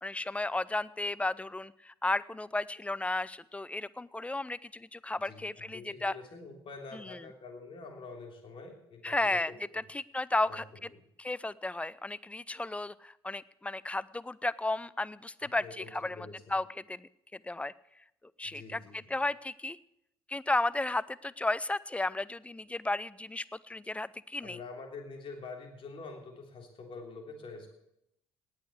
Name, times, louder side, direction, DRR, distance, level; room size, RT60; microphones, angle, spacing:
voice 1, 0.0-6.1 6.9-7.3 9.0-10.6 11.2-17.7 18.4-19.8 20.3-24.6, left 2 dB, 10° left, 20 dB, 0.5 m, -34 dB
voice 2, 5.7-9.8 10.5-10.6 15.6-16.4 18.4-19.1 24.4-27.7, left 3 dB, 40° left, 2 dB, 3.4 m, -46 dB
18.5 x 6.5 x 8.0 m, 0.82 s
figure-of-eight pair, 55°, 13 cm